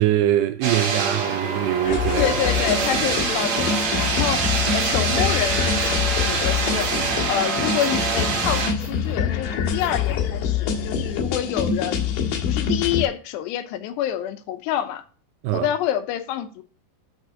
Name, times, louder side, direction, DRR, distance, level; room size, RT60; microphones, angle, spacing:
voice 1, 0.0-2.3 15.4-15.7, right 13 dB, 80° right, 2.5 m, -22 dB
sound 1, 0.6-8.7, right 4 dB, 50° right, 2.5 m, -25 dB
sound 2, 1.8-13.1, left 7 dB, 60° left, 2.6 m, -25 dB
voice 2, 2.2-4.4 4.7-6.9 7.3-12.1 12.4-15.0 15.5-16.6, left 11 dB, 80° left, 2.8 m, -27 dB
sound 3, 2.3-3.2 3.8-3.9 4.3-5.2 5.8-6.0 6.3-7.2 7.8-8.0 8.3-9.2 9.8-10.3, equal, 20° right, 1.9 m, -39 dB
6.6 x 6.4 x 6.2 m
omnidirectional pair, 5.1 m